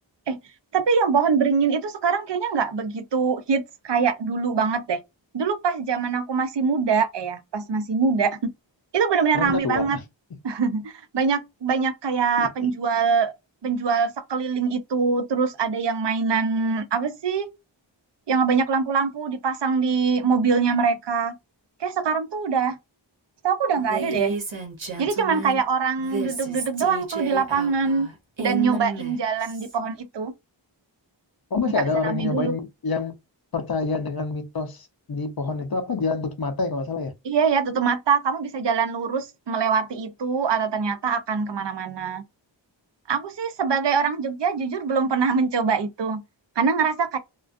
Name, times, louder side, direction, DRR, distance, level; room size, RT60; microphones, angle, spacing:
voice 1, 0.7-5.0 5.3-8.5 8.9-10.0 10.4-13.3 13.6-17.5 18.3-21.4 21.8-22.8 23.4-24.4 25.0-28.1 28.4-30.3 31.8-32.5 37.2-42.2 43.1-46.2 46.6-47.2, right 5 dB, 65° right, 0.6 m, -23 dB
voice 2, 9.3-10.0 12.4-12.7 31.5-33.2 33.5-37.1, left 4 dB, 50° left, 0.6 m, -27 dB
Female speech woman speaking, 23.8-25.6 26.0-29.7, right 4 dB, 80° right, 0.9 m, -32 dB
2.4 x 2.2 x 2.5 m
wide cardioid pair, 40°, 46 cm